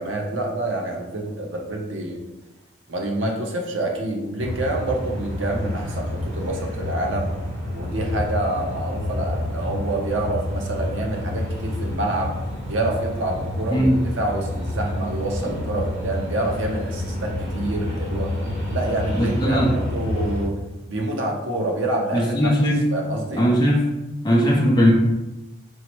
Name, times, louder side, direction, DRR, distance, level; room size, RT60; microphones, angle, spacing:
voice 1, 0.0-2.2 2.9-7.3 7.7-12.3 12.7-18.4 18.7-20.6 20.9-22.5 22.9-23.4, right 2 dB, 85° right, 1 dB, 0.8 m, -27 dB
sound 1, 4.4-20.4, left 1 dB, 65° right, 1.4 m, -29 dB
voice 2, 19.1-19.8 22.1-22.9 23.3-23.9 24.2-24.9, equal, 20° left, -2 dB, 0.6 m, -19 dB
4.7 x 2.1 x 4.4 m, 1.0 s
head